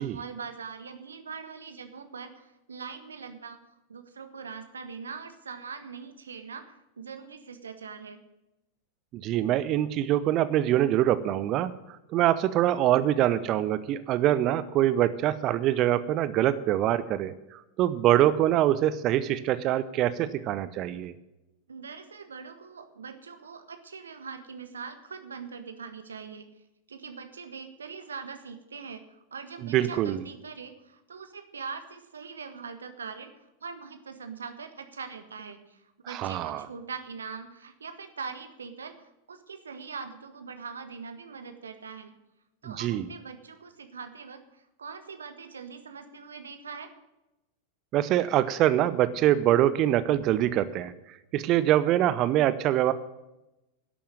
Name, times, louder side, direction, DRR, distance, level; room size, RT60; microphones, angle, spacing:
voice 1, 0.0-3.6 3.9-8.2 21.7-26.5 26.9-42.1 42.6-46.9, right 5 dB, 70° right, 8 dB, 1.5 m, -42 dB
voice 2, 9.1-21.2 29.6-30.2 36.1-36.7 42.6-43.1 47.9-52.9, right 12 dB, 35° right, 15 dB, 0.7 m, -24 dB
11.5 x 8.6 x 8.9 m, 0.94 s
figure-of-eight pair, 90°, 0 cm